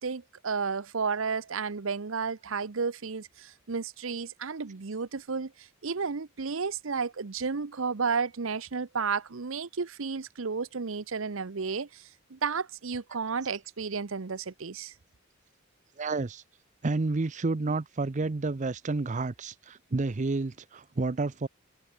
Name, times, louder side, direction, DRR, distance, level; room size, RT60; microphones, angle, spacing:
voice 1, 0.0-14.9, right 5 dB, 75° right, 0.8 m, -32 dB
voice 2, 16.0-16.4 16.8-21.5, right 3 dB, 35° right, 0.6 m, -30 dB
head